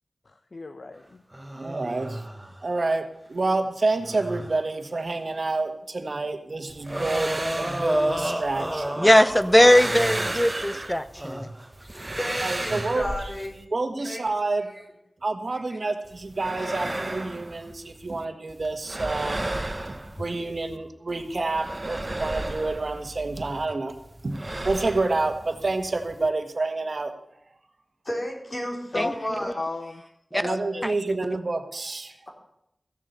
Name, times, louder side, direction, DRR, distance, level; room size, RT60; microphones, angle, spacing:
voice 1, 0.3-1.2 28.9-29.1 29.5-30.0 30.3-30.9, left 3 dB, 65° left, 8 dB, 0.7 m, -35 dB
sound 1, 1.3-2.6 4.0-4.5 6.9-10.8 11.2-12.3 12.6-13.5, right 1 dB, 15° right, 1.3 m, -31 dB
voice 2, 1.6-2.2 2.6-9.0 10.5-10.8 12.4-13.3 13.7-14.7 15.2-19.4 19.9-24.0 24.2-27.1 30.3-32.1, right 3 dB, 60° right, 7 dB, 1.5 m, -28 dB
sound 2, 6.7-8.9 9.3-11.3 11.7-13.6 16.0-18.2 18.5-20.8 21.1-23.6 23.9-26.3, right 1 dB, 30° right, 0.9 m, -34 dB
voice 3, 9.0-11.5 28.9-29.1 29.4-29.5 30.3-30.4 30.8-31.2, left 1 dB, 10° left, 13 dB, 0.8 m, -20 dB
voice 4, 12.2-13.6 14.0-14.2 28.1-29.5, left 1 dB, 40° left, 0 dB, 3.8 m, -32 dB
15.5 x 7.4 x 6.8 m, 0.81 s
wide cardioid pair, 65°, 0 cm